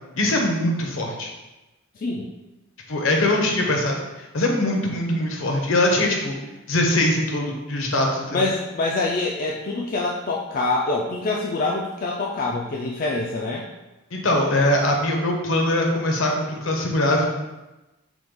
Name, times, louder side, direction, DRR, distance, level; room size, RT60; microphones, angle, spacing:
voice 1, 0.1-1.3 2.9-6.3 6.7-8.5 14.1-17.3, left 1 dB, 65° left, 1 dB, 0.8 m, -22 dB
voice 2, 2.0-2.3 8.3-13.7, left 3 dB, 40° left, -2 dB, 0.4 m, -25 dB
6.0 x 2.3 x 3.7 m, 1.1 s
head